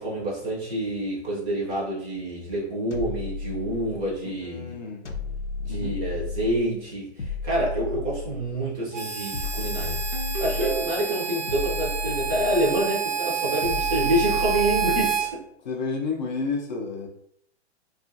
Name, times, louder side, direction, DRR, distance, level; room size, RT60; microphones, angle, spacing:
voice 1, 0.0-4.7 5.6-10.0 10.4-15.4, right 1 dB, 15° right, -5 dB, 0.6 m, -27 dB
sound 1, 2.9-4.2 5.1-6.7 7.2-8.6 9.3-10.9 11.5-12.9 13.6-15.2, left 5 dB, 90° left, 0.6 m, -33 dB
voice 2, 4.4-5.0 5.7-6.0 15.6-17.1, left 4 dB, 40° left, 0 dB, 0.5 m, -30 dB
Harmonica, 8.9-15.3, right 7 dB, 80° right, 0.9 m, -29 dB
Ringtone, 10.1-11.3, right 5 dB, 50° right, 0.7 m, -33 dB
2.4 x 2.4 x 2.5 m, 0.70 s
figure-of-eight pair, 125°, 35 cm